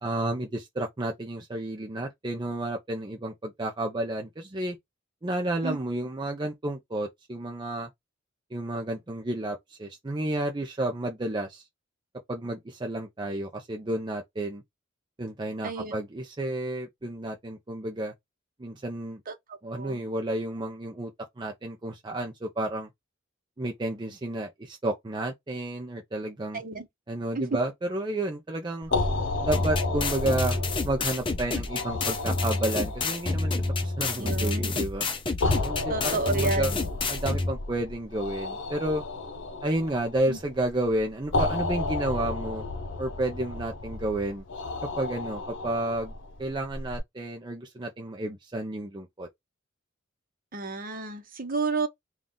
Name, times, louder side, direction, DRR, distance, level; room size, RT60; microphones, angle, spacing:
voice 1, 0.0-4.8 5.2-7.9 8.5-11.6 12.3-14.6 15.2-18.1 18.6-19.2 19.6-21.1 21.4-22.9 23.6-26.6 27.1-28.9 29.4-33.5 33.8-35.1 35.6-36.7 37.1-39.0 39.6-42.7 43.0-44.4 45.0-46.1 46.4-49.3, right 1 dB, 20° right, 0.5 m, -31 dB
voice 2, 19.3-20.1 26.5-26.9 27.3-27.4 28.9-29.0 34.2-34.8 35.9-36.8 40.3-40.4 50.5-51.9, right 3 dB, 45° right, 0.9 m, -31 dB
sound 1, 28.8-47.0, left 2 dB, 65° left, 0.7 m, -33 dB
sound 2, 29.5-37.5, left 3 dB, 25° left, 0.6 m, -29 dB
3.9 x 2.4 x 3.6 m
head